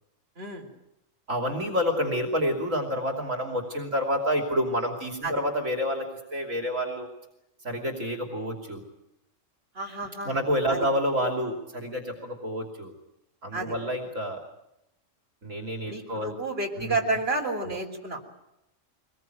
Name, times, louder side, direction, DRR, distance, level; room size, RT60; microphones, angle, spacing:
voice 1, 0.4-0.7 5.2-5.3 9.7-10.4 10.7-10.9 13.5-13.7 15.9-18.2, right 2 dB, 45° right, 0 dB, 4.0 m, -30 dB
voice 2, 1.3-6.1 6.3-7.1 7.6-8.8 10.2-12.9 13.4-14.4 15.4-16.3 16.8-16.9 17.5-17.7, equal, 70° right, 3 dB, 3.2 m, -28 dB
24.0 x 20.5 x 9.1 m, 0.87 s
omnidirectional pair, 1.4 m